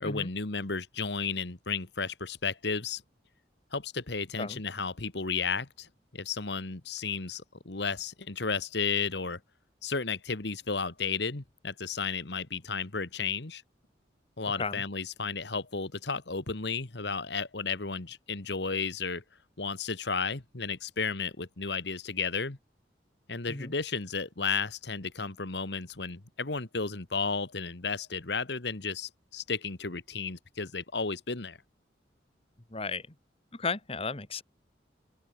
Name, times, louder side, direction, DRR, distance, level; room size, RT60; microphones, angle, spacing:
voice 1, 0.0-3.0 3.7-5.9 6.1-9.4 9.8-13.6 14.4-19.2 19.6-22.6 23.3-31.6, left 5 dB, 65° left, 1.6 m, -33 dB
voice 2, 32.7-33.0 33.5-34.4, left 4 dB, 30° left, 1.7 m, -34 dB
open air
head